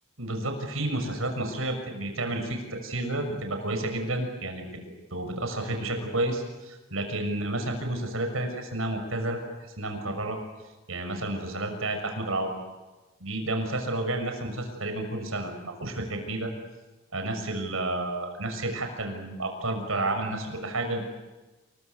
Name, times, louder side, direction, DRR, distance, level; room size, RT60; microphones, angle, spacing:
voice 1, 0.2-4.7 5.1-10.4 10.9-12.5 13.2-16.5 17.1-21.0, right 2 dB, 80° right, 5 dB, 6.6 m, -31 dB
29.5 x 24.0 x 8.2 m, 1.2 s
head